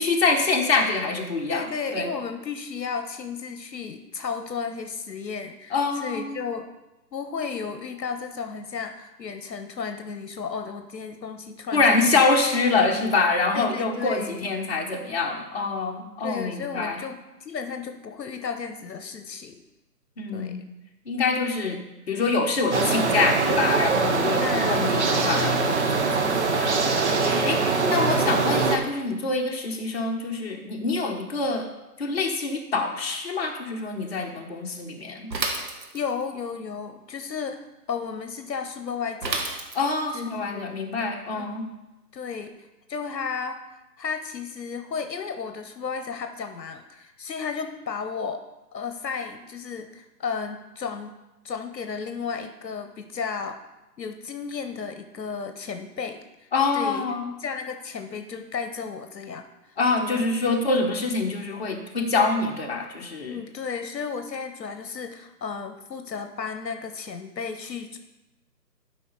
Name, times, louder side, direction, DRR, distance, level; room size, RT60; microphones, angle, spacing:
voice 1, 0.0-1.7 1.9-2.1 5.7-6.4 11.7-17.0 20.2-20.7 21.0-21.8 22.1-31.7 32.0-35.3 39.7-41.6 56.5-57.3 59.8-63.4, left 3 dB, 35° left, 0 dB, 1.3 m, -25 dB
voice 2, 1.5-6.7 7.1-12.2 12.7-13.1 13.5-14.4 16.2-19.6 20.3-20.6 24.4-24.9 27.4-28.1 35.9-39.4 40.1-40.8 41.4-41.5 42.1-43.6 44.0-48.4 48.7-51.1 51.4-53.6 54.0-56.5 56.7-57.1 57.4-59.5 60.0-60.3 63.3-68.0, left 5 dB, 80° left, 7 dB, 0.9 m, -33 dB
sound 1, 22.7-28.8, right 4 dB, 45° right, 0.9 m, -23 dB
Bicycle / Mechanisms, 35.3-36.3 39.2-40.1, right 3 dB, 80° right, 1.7 m, -30 dB
12.0 x 5.1 x 3.9 m, 1.0 s
figure-of-eight pair, 155°, 50 cm